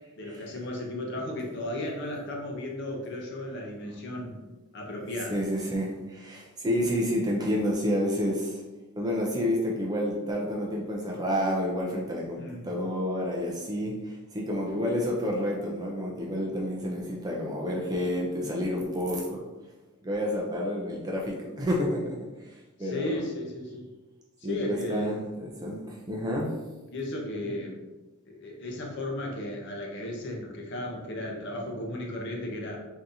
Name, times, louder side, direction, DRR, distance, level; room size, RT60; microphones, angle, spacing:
voice 1, 0.2-4.4 4.7-5.4 12.4-12.8 22.8-23.9 24.4-25.2 26.9-27.9 28.2-32.8, left 1 dB, 50° left, 0 dB, 0.6 m, -35 dB
voice 2, 5.3-8.6 9.0-19.4 20.0-22.2 22.8-23.2 24.4-26.5, equal, 15° right, -2 dB, 0.4 m, -29 dB
3.6 x 2.8 x 2.6 m, 1.1 s
head